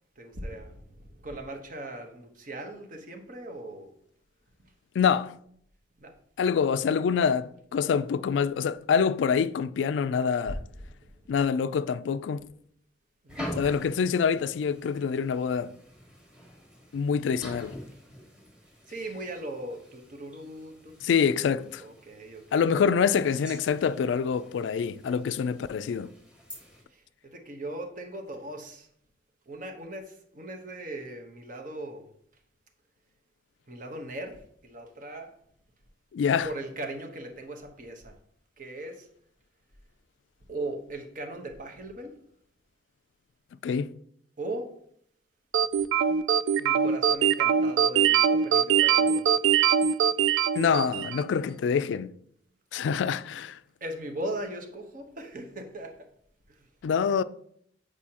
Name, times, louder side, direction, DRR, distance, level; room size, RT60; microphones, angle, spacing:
voice 1, 0.2-3.9 6.0-6.1 10.5-10.6 10.8-10.9 13.2-13.5 18.9-22.7 26.9-28.9 29.5-32.1 33.7-35.4 36.4-38.2 38.6-39.1 40.5-42.1 44.4-44.7 46.6-49.3 53.8-56.1 56.5-56.6, right 1 dB, 45° right, 1.0 m, -39 dB
voice 2, 5.0-5.4 6.4-10.6 11.3-12.5 13.5-15.8 16.9-17.8 21.0-21.8 22.5-26.1 36.1-36.5 43.6-43.9 50.6-52.1 52.7-53.6 56.8-57.2, left 6 dB, 80° left, 0.3 m, -26 dB
sound 1, 13.3-26.8, equal, 5° right, 1.6 m, -45 dB
sound 2, 45.5-51.3, right 8 dB, 85° right, 0.3 m, -22 dB
8.3 x 4.9 x 2.9 m
head